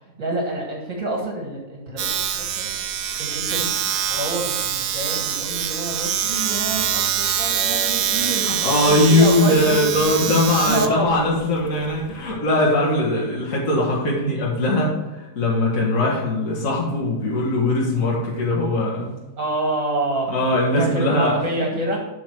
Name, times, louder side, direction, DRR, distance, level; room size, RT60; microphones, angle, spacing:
voice 1, 0.2-2.7 3.2-3.7 4.1-10.1 10.7-11.1 12.9-13.2 13.8-14.0 19.4-20.3 20.8-22.0, right 1 dB, 55° right, 0 dB, 2.1 m, -27 dB
Domestic sounds home sounds, 2.0-12.4, right 9 dB, 80° right, 1.3 m, -25 dB
voice 2, 8.3-19.1 20.3-21.4, left 1 dB, 55° left, -4 dB, 1.9 m, -20 dB
12.0 x 4.8 x 4.5 m, 1.1 s
omnidirectional pair, 1.7 m